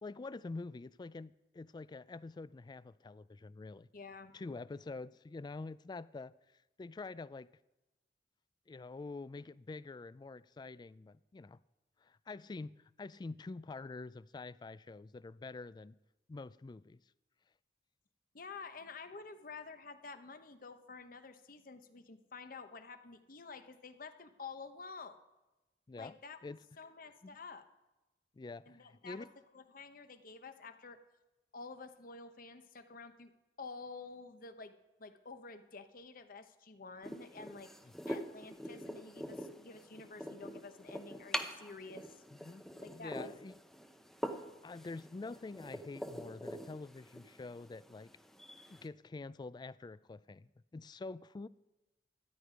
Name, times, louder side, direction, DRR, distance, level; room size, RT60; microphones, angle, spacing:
voice 1, 0.0-3.9 4.3-6.3 6.8-7.5 8.7-11.6 12.0-16.0 16.3-17.0 25.9-26.1 26.4-26.6 27.2-27.4 28.4-29.3 37.8-37.9 42.3-42.6 42.9-43.6 44.4-48.1 48.7-51.5, left 3 dB, 25° left, 0.3 m, -46 dB
voice 2, 3.9-4.4 18.3-25.2 25.9-26.4 26.8-27.6 28.7-29.3 29.5-31.0 31.5-33.3 33.6-34.7 35.0-37.7 38.1-42.2 42.8-43.3, left 4 dB, 55° left, 1.0 m, -50 dB
sound 1, 37.0-48.9, equal, ahead, 0.7 m, -45 dB
13.5 x 10.0 x 5.1 m
head